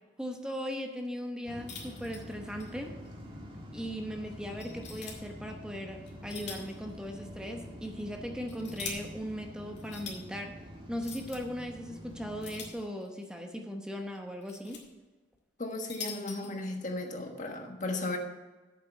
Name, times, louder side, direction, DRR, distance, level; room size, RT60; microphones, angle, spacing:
voice 1, 0.2-3.0 3.7-10.6 10.9-14.8, equal, 5° right, 3 dB, 0.9 m, -38 dB
sound 1, 1.5-12.7, equal, 30° right, 1.7 m, -46 dB
sound 2, 1.7-2.7 3.0-3.1 3.7-3.8 4.6-5.2 6.1-6.8 7.1-7.2 8.1-9.0 9.8-10.2 11.0-11.4 12.4-13.2 14.1-14.8 15.6-16.5, left 5 dB, 75° left, 2.3 m, -43 dB
voice 2, 15.6-18.2, left 2 dB, 45° left, 3 dB, 1.4 m, -35 dB
8.5 x 6.6 x 6.8 m, 1.2 s
head